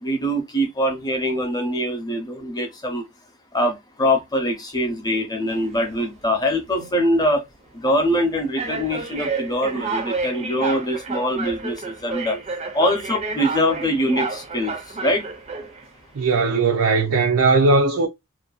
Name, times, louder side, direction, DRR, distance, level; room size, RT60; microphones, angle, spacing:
voice 1, 0.0-3.0 3.5-7.5 7.7-12.4 12.7-14.7 15.0-15.2, equal, 20° left, 0.6 m, -23 dB
sound 1, 5.5-6.1 6.8-7.0 7.8-8.0 8.6-15.8, right 4 dB, 30° right, 0.5 m, -30 dB
voice 2, 16.1-18.1, right 3 dB, 80° right, 0.5 m, -18 dB
2.6 x 2.2 x 2.3 m
head